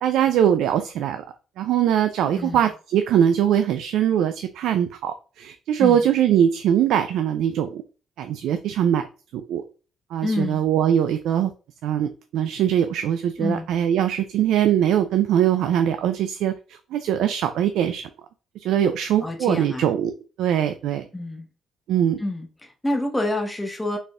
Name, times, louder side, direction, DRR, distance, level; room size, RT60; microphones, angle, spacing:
voice 1, 0.0-1.2 1.6-7.8 8.2-9.1 9.3-9.6 10.1-11.5 11.8-16.5 16.9-18.0 18.6-21.1 21.9-22.2, right 10 dB, 85° right, 0.3 m, -22 dB
voice 2, 2.3-2.7 5.8-6.1 10.2-10.6 13.4-13.7 19.2-19.9 21.1-21.5 22.2-24.0, left 1 dB, 10° left, 1.0 m, -27 dB
4.1 x 3.4 x 2.5 m
cardioid pair, 90°, 0 cm